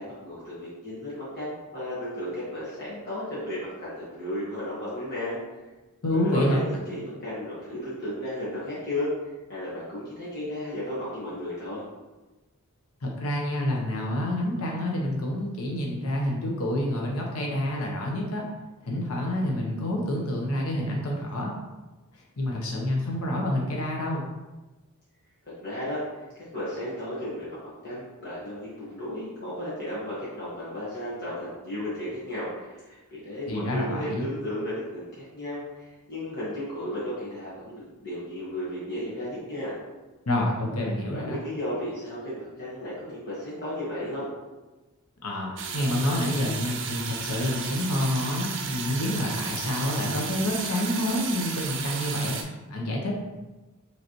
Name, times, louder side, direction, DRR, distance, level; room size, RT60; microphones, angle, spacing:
voice 1, 0.0-5.4 6.1-11.8 25.6-26.3 26.5-39.7 41.1-44.3, left 1 dB, 50° left, -9 dB, 1.3 m, -34 dB
voice 2, 6.0-6.6 13.0-18.4 18.8-21.5 22.1-24.2 33.5-34.3 40.3-41.4 45.2-52.4 52.7-53.2, left 1 dB, 80° left, -1 dB, 0.7 m, -28 dB
sound 1, 45.6-52.4, right 5 dB, 60° right, 0.6 m, -33 dB
5.1 x 3.2 x 2.9 m, 1.1 s
head